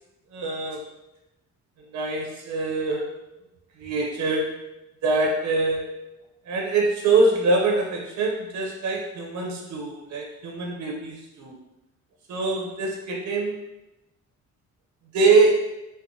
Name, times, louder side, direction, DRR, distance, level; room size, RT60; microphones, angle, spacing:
voice 1, 0.3-0.9 1.9-3.1 3.8-4.7 5.0-5.9 6.5-11.6 12.3-13.6 15.1-15.5, right 3 dB, 70° right, 0 dB, 0.8 m, -24 dB
4.4 x 2.1 x 2.8 m, 0.94 s
cardioid pair, 90°, 30 cm